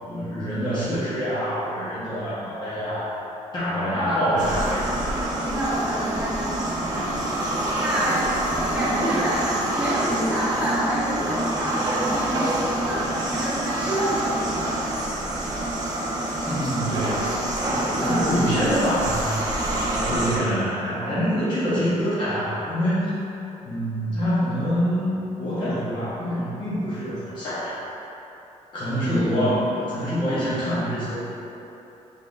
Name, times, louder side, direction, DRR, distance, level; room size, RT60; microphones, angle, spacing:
voice 1, 0.0-3.1 3.5-4.9 16.5-17.4 17.6-19.3 19.9-23.1 23.6-27.7 28.7-31.3, equal, 40° left, -11 dB, 0.9 m, -25 dB
voice 2, 3.9-4.6 5.3-14.7 18.0-18.3 28.9-29.5, right 1 dB, 10° right, -11 dB, 0.9 m, -28 dB
sound 1, 4.4-20.4, right 1 dB, 30° right, 0.7 m, -27 dB
5.7 x 3.6 x 2.5 m, 3.0 s
wide cardioid pair, 165°, 12 cm